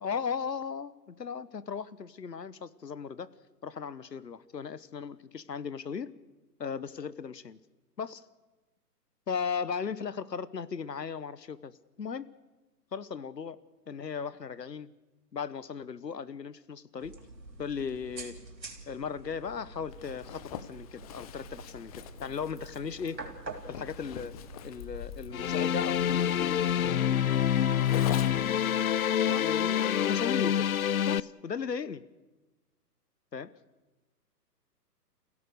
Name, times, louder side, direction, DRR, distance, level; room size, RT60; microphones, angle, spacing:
voice 1, 0.0-3.3 3.6-6.1 6.6-7.6 8.0-8.2 9.3-12.3 12.9-13.6 13.9-14.9 15.3-17.2 17.6-18.4 18.9-23.2 23.7-24.3 24.6-27.2 29.3-30.7 31.1-32.0 33.3-33.5, left 6 dB, 80° left, 17 dB, 1.2 m, -37 dB
sound 1, 17.0-28.5, right 2 dB, 85° right, 3.7 m, -47 dB
Zipper (clothing), 19.9-28.6, left 10 dB, 25° left, 0.8 m, -44 dB
sound 2, 25.3-31.2, left 9 dB, 60° left, 0.8 m, -27 dB
29.0 x 16.5 x 6.5 m, 1.2 s
figure-of-eight pair, 130°, 49 cm